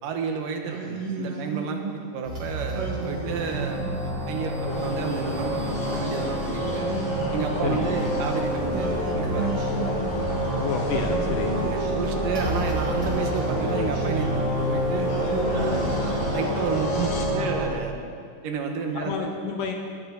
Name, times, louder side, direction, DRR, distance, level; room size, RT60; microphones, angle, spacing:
voice 1, 0.0-6.8 7.3-9.6 11.4-15.1 15.5-17.9 18.4-19.3, right 5 dB, 80° right, 3 dB, 2.8 m, -31 dB
Singing, 0.6-2.1 2.7-4.1 4.7-6.0 6.6-8.2 8.7-10.5 10.9-12.5 13.0-14.7 15.1-16.7, right 4 dB, 50° right, 2.5 m, -35 dB
sound 1, 2.3-17.7, right 1 dB, 35° right, 2.9 m, -28 dB
sound 2, 4.7-17.2, left 2 dB, 50° left, 2.5 m, -34 dB
voice 2, 7.6-7.9 10.6-11.6 19.0-19.8, left 6 dB, 75° left, 3 dB, 2.5 m, -30 dB
20.5 x 13.0 x 4.0 m, 2.2 s
omnidirectional pair, 3.8 m